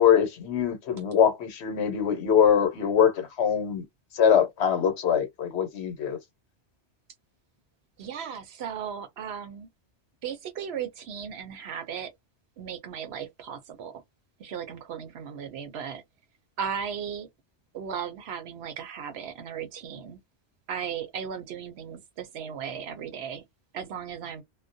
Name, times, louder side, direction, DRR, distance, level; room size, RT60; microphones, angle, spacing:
voice 1, 0.0-3.8 4.1-6.2, left 8 dB, 70° left, 1.0 m, -23 dB
voice 2, 8.0-9.7 10.2-12.1 12.6-14.0 14.4-16.0 16.6-17.3 17.7-20.2 20.7-23.4 23.7-24.4, right 7 dB, 70° right, 0.8 m, -36 dB
2.3 x 2.1 x 2.6 m
omnidirectional pair, 1.2 m